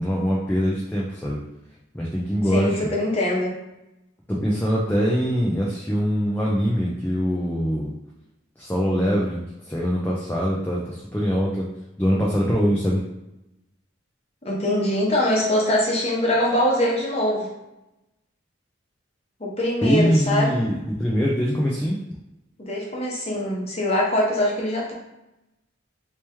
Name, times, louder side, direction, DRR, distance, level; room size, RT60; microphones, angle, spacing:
voice 1, 0.0-1.4 1.9-2.8 4.3-7.9 8.6-9.4 9.7-11.7 12.0-13.0 19.8-22.0, equal, 10° left, -5 dB, 0.4 m, -23 dB
voice 2, 2.5-3.5 14.4-17.5 19.4-20.5 22.6-24.9, left 1 dB, 30° left, -3 dB, 0.9 m, -23 dB
3.0 x 3.0 x 3.3 m, 0.92 s
head